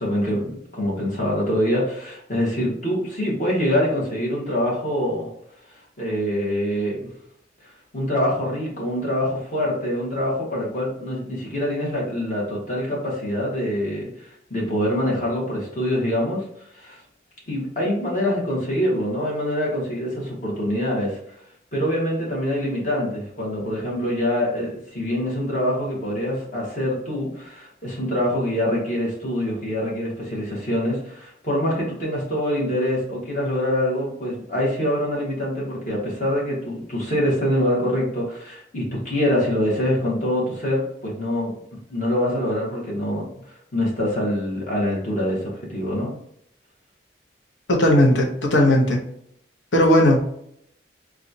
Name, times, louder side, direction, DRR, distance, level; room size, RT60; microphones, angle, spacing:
voice 1, 0.0-5.3 6.0-7.0 7.9-16.4 16.7-17.0 17.5-21.2 21.7-41.5 41.9-46.1, equal, 40° left, -4 dB, 1.3 m, -25 dB
voice 2, 47.7-49.0 49.7-50.2, left 1 dB, 85° left, 0 dB, 0.8 m, -16 dB
4.0 x 2.4 x 2.7 m, 0.71 s
head